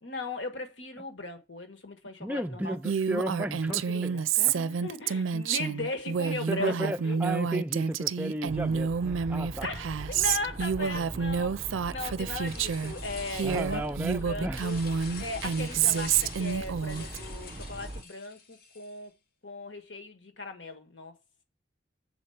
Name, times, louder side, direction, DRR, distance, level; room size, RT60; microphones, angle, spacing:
voice 1, 0.0-2.8 3.7-7.2 9.6-13.8 14.2-14.8 15.2-19.1 19.4-21.2, left 3 dB, 70° left, 1.4 m, -38 dB
voice 2, 2.2-4.2 6.2-9.7 10.8-11.2 13.4-14.6, right 1 dB, 10° right, 0.3 m, -34 dB
Female speech woman speaking, 2.8-12.9 13.3-17.2, right 6 dB, 85° right, 0.4 m, -29 dB
sound 1, 8.5-18.0, right 1 dB, 30° right, 0.8 m, -41 dB
sound 2, 12.4-19.0, left 5 dB, 50° left, 1.0 m, -46 dB
7.1 x 4.4 x 6.9 m
head